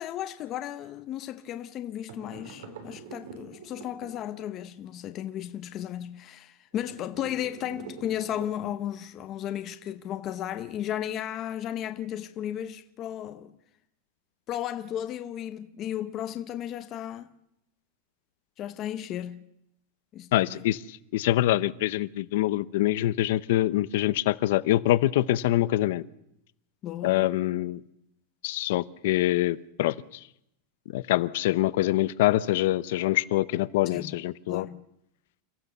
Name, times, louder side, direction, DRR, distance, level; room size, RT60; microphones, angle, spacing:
voice 1, 0.0-13.6 14.5-17.3 18.6-19.4 20.1-20.6 26.8-27.3 33.9-34.1 34.5-34.8, left 11 dB, 25° left, 0.8 m, -34 dB
sound 1, 2.1-4.7 6.7-9.0, right 4 dB, 80° right, 4.7 m, -45 dB
voice 2, 20.3-26.0 27.0-27.8 28.4-30.0 30.9-34.7, left 15 dB, 60° left, 0.8 m, -25 dB
28.5 x 14.5 x 6.9 m
supercardioid pair, 175°, 0 cm